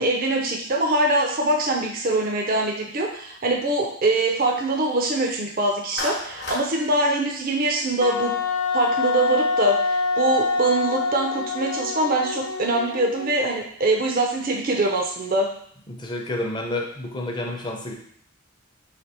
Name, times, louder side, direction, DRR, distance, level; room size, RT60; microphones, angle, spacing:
voice 1, 0.0-8.3 8.7-15.5, right 2 dB, 45° right, 1 dB, 0.5 m, -23 dB
Clapping, 6.0-6.7, left 2 dB, 50° left, 0.9 m, -31 dB
Wind instrument woodwind instrument, 8.0-13.5, left 3 dB, 85° left, 0.4 m, -25 dB
voice 2, 15.9-17.9, left 1 dB, 20° left, 0 dB, 0.6 m, -29 dB
3.3 x 3.3 x 4.2 m, 0.63 s
head